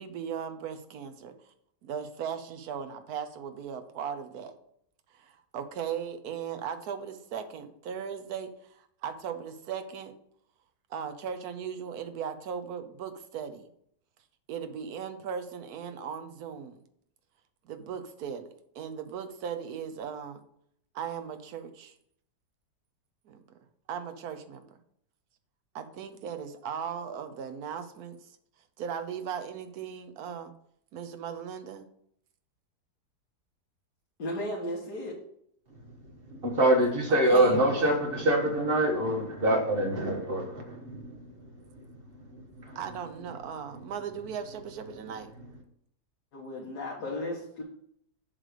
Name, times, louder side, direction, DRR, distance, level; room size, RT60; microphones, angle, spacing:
voice 1, 0.0-1.5 1.8-4.6 5.1-10.1 10.9-13.7 14.5-16.8 17.6-18.5 18.7-20.4 20.9-21.9 23.3-23.6 23.9-24.7 25.7-28.3 28.8-30.5 30.9-31.8 37.1-37.9 42.7-45.3, right 7 dB, 70° right, 1.2 m, -38 dB
voice 2, 34.2-35.2 46.3-47.6, left 1 dB, 70° left, 1.8 m, -35 dB
voice 3, 35.7-42.8 43.7-43.9 45.4-45.5, right 1 dB, 35° right, 1.3 m, -27 dB
7.4 x 3.4 x 6.4 m
omnidirectional pair, 1.8 m